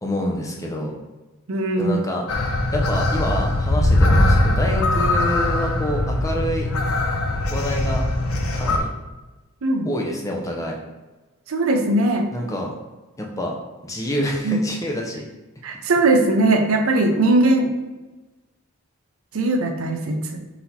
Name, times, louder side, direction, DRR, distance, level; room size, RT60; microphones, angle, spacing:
voice 1, 0.0-0.9 1.8-2.3 2.7-6.7 7.5-8.0 8.5-8.9 9.9-10.8 12.3-12.7 13.2-13.5 13.8-15.2 16.1-16.3 17.0-17.1, equal, 15° left, 0 dB, 0.5 m, -27 dB
voice 2, 1.5-2.0 9.6-9.9 11.5-12.3 14.4-14.6 15.6-17.7 19.3-20.2, right 2 dB, 70° right, 4 dB, 0.6 m, -19 dB
sound 1, 2.3-8.8, left 1 dB, 75° left, 0.5 m, -20 dB
4.1 x 2.8 x 3.9 m, 1.1 s
head